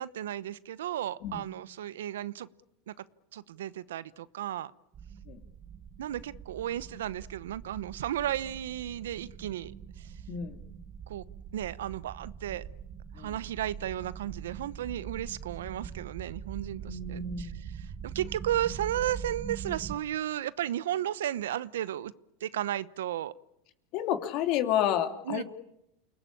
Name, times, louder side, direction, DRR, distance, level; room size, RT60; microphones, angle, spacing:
voice 1, 0.0-2.5 2.9-3.0 3.3-4.7 6.0-10.1 11.1-11.2 11.5-12.6 13.2-17.5 17.8-22.1 22.4-23.3 25.3-25.4, right 12 dB, 85° right, 0.9 m, -34 dB
sound 1, 4.9-20.0, right 8 dB, 35° right, 1.6 m, -43 dB
voice 2, 16.9-17.6 23.9-25.4, left 10 dB, 55° left, 2.9 m, -30 dB
29.0 x 19.5 x 8.8 m
supercardioid pair, 115°, 0 cm